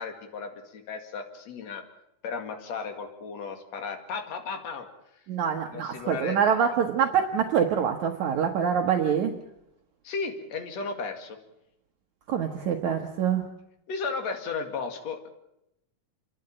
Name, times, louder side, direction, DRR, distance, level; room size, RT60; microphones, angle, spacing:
voice 1, 0.0-1.8 2.2-4.9 5.7-6.4 10.0-11.4 13.9-15.3, left 5 dB, 50° left, 5 dB, 3.2 m, -34 dB
voice 2, 5.3-9.3 12.3-13.5, right 7 dB, 65° right, 3 dB, 2.3 m, -25 dB
29.5 x 12.0 x 8.9 m, 0.82 s
omnidirectional pair, 4.1 m